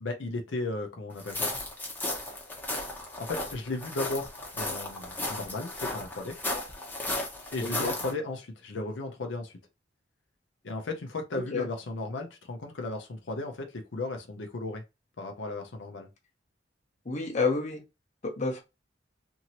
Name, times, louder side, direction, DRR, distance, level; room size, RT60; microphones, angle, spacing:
voice 1, 0.0-1.5 3.2-4.3 4.5-6.4 7.5-9.6 10.6-14.8 15.2-16.1, left 2 dB, 80° left, 0.6 m, -35 dB
sound 1, 1.2-8.1, left 2 dB, 10° left, 0.7 m, -35 dB
voice 2, 7.6-8.0 11.3-11.7 17.0-17.8 18.2-18.6, left 3 dB, 40° left, 0.8 m, -29 dB
2.9 x 2.7 x 2.8 m
head